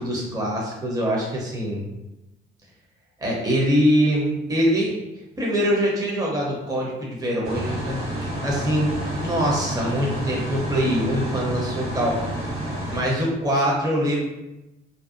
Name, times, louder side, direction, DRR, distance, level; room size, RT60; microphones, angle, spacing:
voice 1, 0.0-1.8 3.2-4.9 5.4-8.0 8.4-12.2 12.9-14.2, equal, 20° right, -4 dB, 0.7 m, -23 dB
sound 1, 7.4-13.0, right 1 dB, 80° right, 1.1 m, -29 dB
2.5 x 2.1 x 2.5 m, 0.97 s
supercardioid pair, 70°, 21 cm